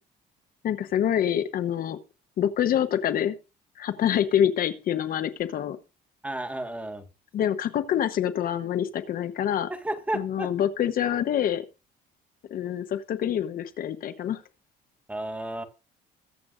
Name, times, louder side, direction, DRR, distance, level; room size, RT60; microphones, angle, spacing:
voice 1, 0.6-2.0 2.4-3.3 3.8-5.8 7.3-9.7 10.1-11.6 12.5-14.4, left 10 dB, 60° left, 11 dB, 1.0 m, -26 dB
voice 2, 6.2-7.0 9.7-10.5 15.1-15.6, right 1 dB, 10° right, 7 dB, 1.7 m, -32 dB
21.5 x 7.6 x 2.6 m, 0.32 s
cardioid pair, 110°, 17 cm